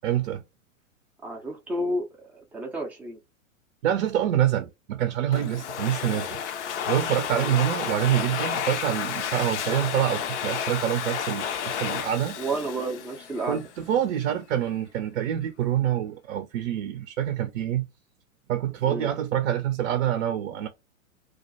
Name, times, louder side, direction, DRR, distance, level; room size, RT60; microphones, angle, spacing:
voice 1, 0.0-0.4 3.8-6.4 6.9-12.4 13.5-17.9 18.5-20.7, right 11 dB, 55° right, 0.5 m, -26 dB
voice 2, 1.2-3.2 7.3-7.5 12.4-13.6 18.9-19.1, right 1 dB, 5° right, 0.3 m, -31 dB
Domestic sounds home sounds, 5.3-13.8, left 8 dB, 60° left, 0.5 m, -31 dB
2.3 x 2.1 x 2.7 m
figure-of-eight pair, 105°, 41 cm